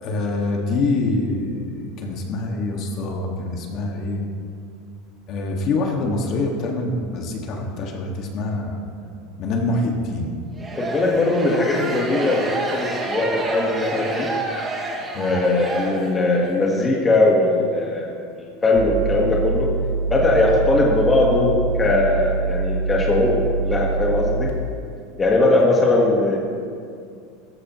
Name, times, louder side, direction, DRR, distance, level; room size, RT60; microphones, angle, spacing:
voice 1, 0.0-4.3 5.3-8.8 9.4-10.3 15.1-15.4, left 2 dB, 40° left, 1 dB, 1.9 m, -25 dB
sound 1, 10.6-16.5, right 2 dB, 15° right, 1.6 m, -29 dB
voice 2, 10.8-14.3 15.2-19.7 20.1-24.5 25.2-26.4, left 2 dB, 15° left, -2 dB, 1.6 m, -20 dB
sound 2, 18.7-24.5, right 4 dB, 80° right, 1.4 m, -24 dB
16.5 x 14.5 x 3.1 m, 2.3 s
supercardioid pair, 145°, 0 cm